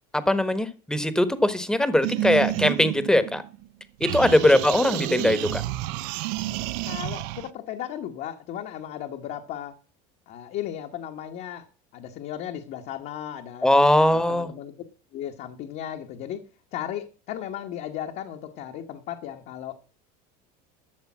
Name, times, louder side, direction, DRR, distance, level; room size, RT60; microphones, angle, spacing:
voice 1, 0.1-3.4 4.0-5.6 13.6-14.5, left 1 dB, 5° left, 1.3 m, -21 dB
sound 1, 2.0-3.7 4.0-7.5, right 16 dB, 70° right, 0.8 m, -30 dB
voice 2, 4.1-4.5 6.9-9.7 10.3-11.6 11.9-13.7 14.0-14.7 15.1-16.4 16.7-19.7, left 11 dB, 50° left, 1.3 m, -35 dB
12.0 x 6.8 x 7.4 m
cardioid pair, 140°, 19 cm